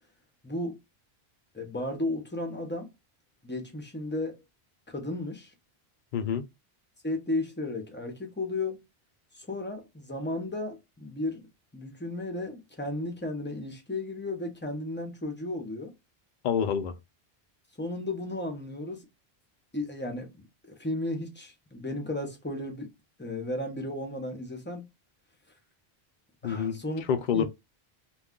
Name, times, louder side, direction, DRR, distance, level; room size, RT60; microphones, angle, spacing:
voice 1, 0.4-0.8 1.5-2.9 3.4-4.4 4.9-5.5 7.0-8.8 9.3-11.5 11.7-15.9 17.8-19.1 19.7-22.9 23.2-24.8 26.4-27.0 27.3-27.4, left 2 dB, 15° left, 0.6 m, -34 dB
voice 2, 6.1-6.5 16.4-16.9 26.4-26.8 27.1-27.4, left 7 dB, 60° left, 0.6 m, -27 dB
2.4 x 2.3 x 3.5 m
omnidirectional pair, 1.1 m